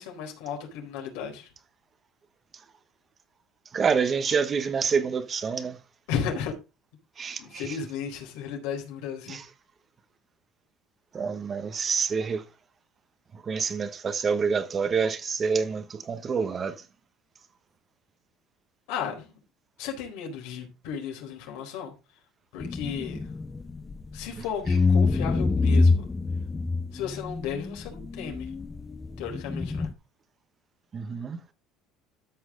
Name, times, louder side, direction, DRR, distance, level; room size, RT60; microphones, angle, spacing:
voice 1, 0.0-1.5 6.1-6.5 7.4-9.4 18.9-19.3 19.8-21.9 22.5-23.4 24.1-26.1 26.9-28.5 29.2-29.9, left 7 dB, 80° left, 4.3 m, -34 dB
voice 2, 3.7-5.8 7.2-7.8 9.3-9.4 11.1-12.4 13.3-16.8 24.4-24.5 30.9-31.4, right 5 dB, 30° right, 1.2 m, -27 dB
sound 1, 22.6-24.3 24.7-29.9, left 3 dB, 20° left, 0.7 m, -26 dB
13.5 x 6.2 x 3.9 m
supercardioid pair, 115°, 0 cm